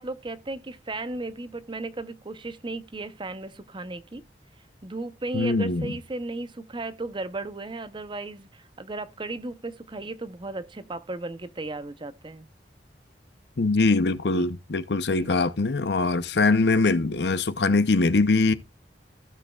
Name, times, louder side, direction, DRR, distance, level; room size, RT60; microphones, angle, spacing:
voice 1, 0.0-4.2 4.8-12.5 14.3-14.5 15.1-15.3, right 2 dB, 30° right, 0.7 m, -35 dB
voice 2, 5.3-5.9 13.6-18.5, left 3 dB, 65° left, 0.7 m, -22 dB
15.5 x 6.5 x 2.3 m
head